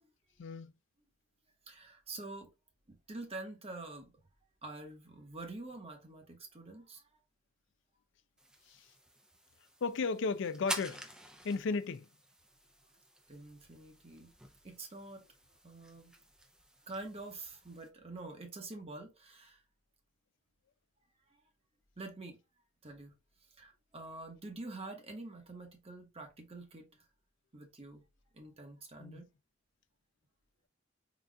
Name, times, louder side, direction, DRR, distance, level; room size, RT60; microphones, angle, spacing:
voice 1, 0.4-0.7 8.7-8.9 9.8-11.0 11.4-12.1 29.0-29.2, left 4 dB, 65° left, 0.4 m, -34 dB
voice 2, 1.7-2.5 2.9-4.1 4.6-7.0 13.3-14.3 14.6-15.3 15.6-16.1 16.9-19.6 21.3-21.4 22.0-22.4 22.8-23.1 23.6-27.1 27.5-28.1 28.3-29.3, right 2 dB, 30° right, 1.0 m, -47 dB
sound 1, 8.4-17.9, right 1 dB, 5° right, 0.5 m, -48 dB
4.0 x 2.4 x 3.4 m
head